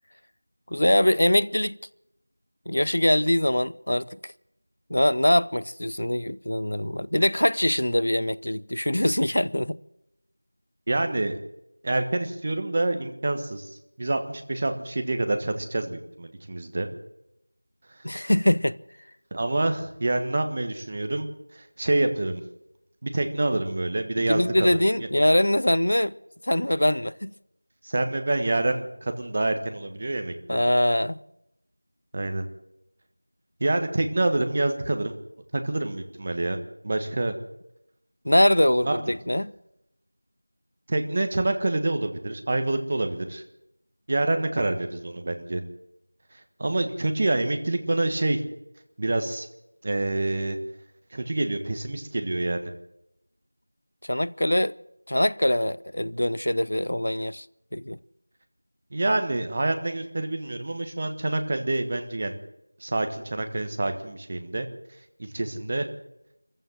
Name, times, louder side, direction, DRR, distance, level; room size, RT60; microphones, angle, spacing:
voice 1, 0.7-1.8 2.7-4.3 4.9-9.8 18.0-18.8 24.3-26.2 26.4-27.3 30.5-31.2 38.2-39.5 54.0-54.8 55.1-57.5 57.7-58.0, left 1 dB, 65° left, 0.7 m, -23 dB
voice 2, 10.9-11.4 11.8-13.7 14.0-16.9 19.3-21.3 21.5-22.4 23.0-24.8 27.8-30.6 32.1-32.4 33.6-35.1 35.5-36.6 36.8-37.4 38.9-39.0 40.9-43.4 44.1-45.6 46.6-48.4 49.0-49.5 49.8-50.6 51.1-52.7 58.9-62.4 62.8-64.7 65.2-65.9, right 2 dB, 25° right, 1.3 m, -27 dB
23.0 x 15.0 x 7.7 m
figure-of-eight pair, 175°, 0 cm